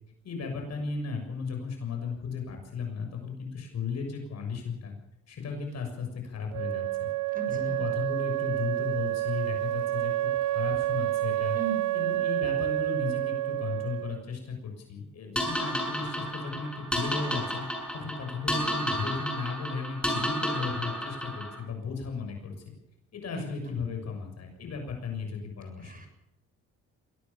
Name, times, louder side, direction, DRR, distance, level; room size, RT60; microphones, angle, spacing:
voice 1, 0.2-4.9 5.3-7.1 7.5-11.6 11.9-17.6 17.9-22.7 23.1-26.1, left 5 dB, 60° left, 3 dB, 7.0 m, -35 dB
Wind instrument woodwind instrument, 6.5-14.2, right 15 dB, 75° right, 0.8 m, -29 dB
voice 2, 7.3-7.9 11.5-12.0 23.3-23.8 25.8-26.1, right 4 dB, 30° right, 6 dB, 7.4 m, -39 dB
sound 1, 15.4-21.6, equal, 5° left, 6.8 m, -32 dB
23.0 x 18.0 x 7.1 m, 0.84 s
cardioid pair, 90°, 30 cm